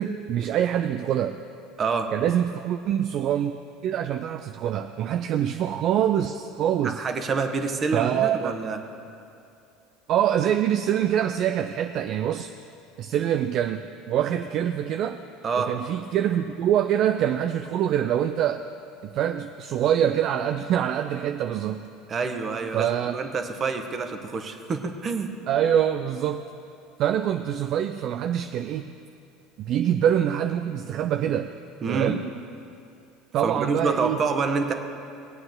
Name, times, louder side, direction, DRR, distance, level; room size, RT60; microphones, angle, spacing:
voice 1, 0.0-1.4 2.1-3.5 3.8-7.0 7.9-8.6 10.1-12.5 13.0-15.2 15.6-18.7 19.0-21.9 22.7-23.2 25.5-26.5 27.0-28.9 29.6-31.5 31.9-32.2 33.3-34.2, right 10 dB, 55° right, 8 dB, 0.4 m, -25 dB
voice 2, 1.8-2.1 6.8-8.8 15.4-15.7 22.1-25.3 31.8-32.1 33.4-34.7, right 4 dB, 35° right, 6 dB, 1.2 m, -27 dB
19.0 x 8.8 x 3.8 m, 2.6 s
hypercardioid pair, 75°, 0 cm